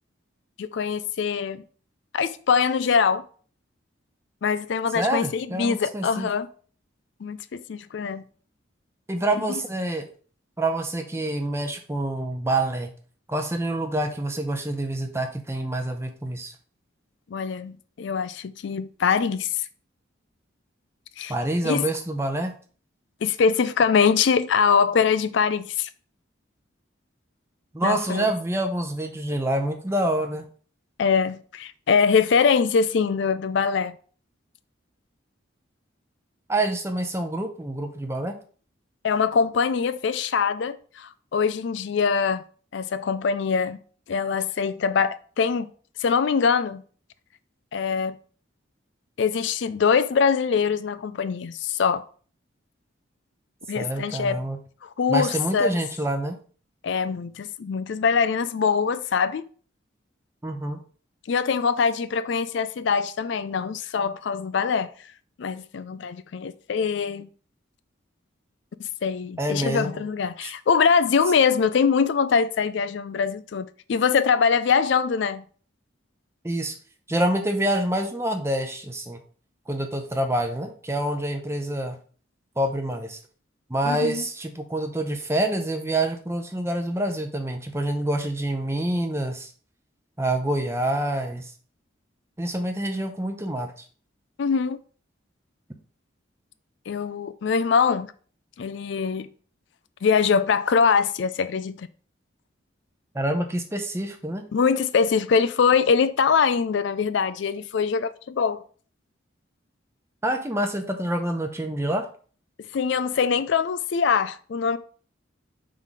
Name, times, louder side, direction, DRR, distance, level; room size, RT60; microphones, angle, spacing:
voice 1, 0.6-1.6 2.1-3.2 4.4-6.5 7.2-8.2 9.5-9.6 17.3-19.6 21.2-21.3 21.6-21.8 23.2-25.9 27.8-28.3 31.0-34.0 39.0-42.4 42.7-43.8 44.1-45.7 46.0-46.8 47.7-48.2 49.2-52.0 53.7-54.4 54.8-55.7 56.8-59.5 61.3-64.9 65.4-67.3 69.0-75.4 83.9-84.3 94.4-94.8 96.9-98.1 98.6-99.3 100.0-101.9 104.5-108.6 112.7-114.8, left 6 dB, 65° left, 0.4 m, -23 dB
voice 2, 4.9-6.3 9.1-10.1 10.6-12.9 13.3-16.5 21.3-22.5 27.7-30.4 36.5-38.3 53.7-54.6 55.1-56.4 60.4-60.8 69.4-70.0 76.4-76.7 77.1-79.2 79.7-82.0 82.6-83.2 83.7-89.5 90.2-91.5 92.4-93.7 103.1-104.4 110.2-112.0, right 1 dB, 15° right, 0.7 m, -27 dB
4.7 x 3.8 x 5.7 m
head